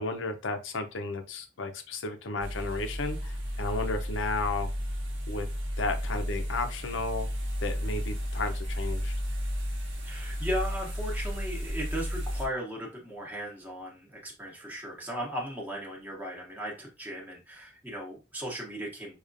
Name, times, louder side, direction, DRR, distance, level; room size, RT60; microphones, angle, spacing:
voice 1, 0.0-4.7 5.3-5.5 5.8-7.3 7.6-9.1, left 3 dB, 80° left, 7 dB, 0.6 m, -33 dB
sound 1, 2.4-12.5, equal, 80° right, 1.0 m, -33 dB
voice 2, 10.0-19.2, equal, 10° right, -3 dB, 0.9 m, -37 dB
4.9 x 2.3 x 2.5 m, 0.30 s
head